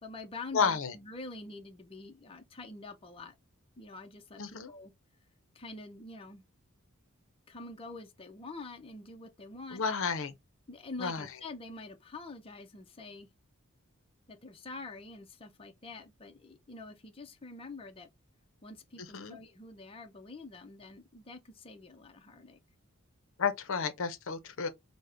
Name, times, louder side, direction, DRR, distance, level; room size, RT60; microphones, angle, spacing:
voice 1, 0.0-3.3 3.8-4.9 5.5-6.4 7.5-9.8 10.7-13.3 14.3-18.1 18.6-22.6, left 3 dB, 25° left, 0.5 m, -46 dB
voice 2, 0.5-0.9 4.4-4.7 9.7-10.3 11.0-11.2 19.1-19.4 23.4-24.7, left 5 dB, 65° left, 0.6 m, -31 dB
5.2 x 2.1 x 3.3 m
head